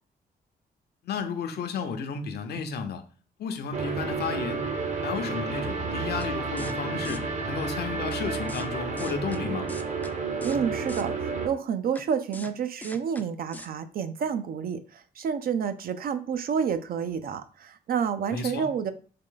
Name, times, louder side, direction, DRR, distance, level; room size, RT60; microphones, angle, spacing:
voice 1, 1.0-3.0 3.4-4.7 5.0-9.7 18.3-18.7, left 5 dB, 75° left, 0.7 m, -32 dB
sound 1, 3.7-11.5, right 4 dB, 45° right, 0.8 m, -31 dB
sound 2, 6.2-6.3 6.6-6.8 7.0-7.2 8.1-8.2 8.5-8.7 9.0-9.4 9.7-10.1 10.4-10.6 10.9-11.0 12.0-12.1 12.3-12.5 12.8-13.2 13.5-13.7, left 2 dB, 10° left, 0.4 m, -41 dB
voice 2, 10.4-18.9, right 7 dB, 60° right, 0.5 m, -29 dB
3.8 x 3.2 x 3.7 m
cardioid pair, 115°, 17 cm